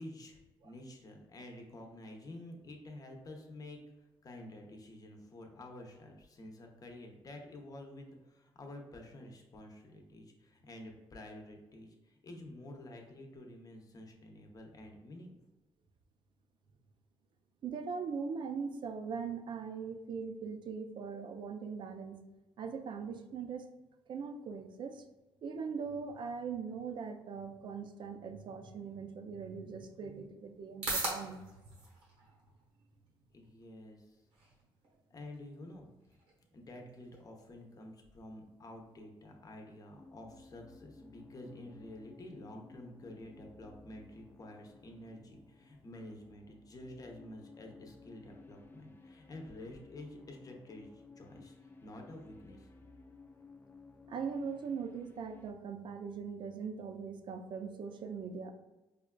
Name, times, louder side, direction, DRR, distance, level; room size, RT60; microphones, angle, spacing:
voice 1, 0.0-15.4 33.3-34.2 35.1-36.2 36.5-51.6 51.8-52.7, left 1 dB, 40° left, 2 dB, 0.7 m, -50 dB
voice 2, 17.6-22.2 22.6-23.7 24.1-25.0 25.4-31.5 54.1-58.5, right 5 dB, 60° right, 7 dB, 0.4 m, -41 dB
sound 1, 29.3-46.3, right 2 dB, 90° right, 1.0 m, -48 dB
sound 2, 39.9-55.5, left 3 dB, 20° left, 0.4 m, -57 dB
5.0 x 2.3 x 2.2 m, 1.1 s
cardioid pair, 75°, 9 cm